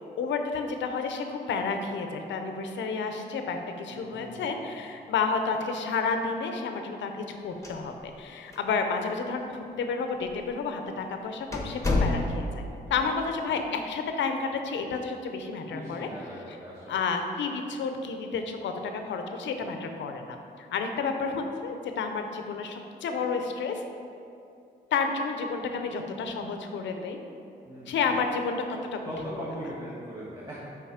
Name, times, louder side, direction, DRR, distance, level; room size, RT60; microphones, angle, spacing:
voice 1, 0.2-12.6 12.9-16.1 16.9-23.8 24.9-27.2 27.9-28.6 28.9-29.0, left 5 dB, 85° left, 5 dB, 0.6 m, -31 dB
voice 2, 3.9-4.6 12.9-13.1 15.6-16.9 27.7-28.1 29.0-30.6, equal, 20° right, -7 dB, 1.3 m, -40 dB
sound 1, 7.5-8.3 8.5-8.6 9.4-9.5 10.3-10.5 10.9-11.0 11.5-12.6, left 2 dB, 15° left, 1.1 m, -28 dB
5.7 x 4.8 x 4.9 m, 2.6 s
cardioid pair, 80°, 19 cm